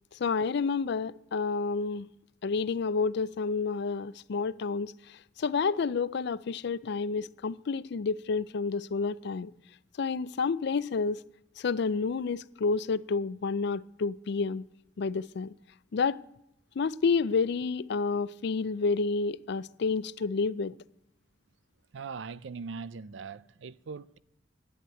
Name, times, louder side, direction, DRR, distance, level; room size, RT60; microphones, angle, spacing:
voice 1, 0.1-2.1 2.4-9.5 10.0-11.2 11.6-14.6 15.0-15.5 15.9-16.2 16.8-20.7, left 4 dB, 65° left, 0.4 m, -29 dB
voice 2, 21.9-24.2, right 5 dB, 70° right, 0.4 m, -40 dB
11.0 x 8.0 x 9.0 m
head